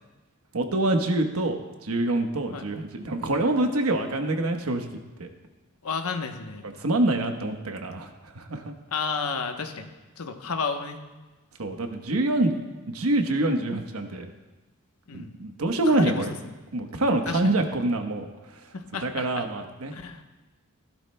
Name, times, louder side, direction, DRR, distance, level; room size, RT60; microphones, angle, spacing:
voice 1, 0.5-4.9 5.2-5.3 6.6-8.7 11.6-12.6 12.9-14.3 15.1-16.3 16.7-18.6 19.0-19.9, right 2 dB, 80° right, 5 dB, 1.1 m, -26 dB
voice 2, 5.8-6.7 8.9-9.9 10.2-11.0 15.1-15.3 15.9-16.3 17.3-17.4 18.7-19.4 19.9-20.2, left 5 dB, 80° left, 6 dB, 1.0 m, -31 dB
17.0 x 12.0 x 2.2 m, 1.2 s
head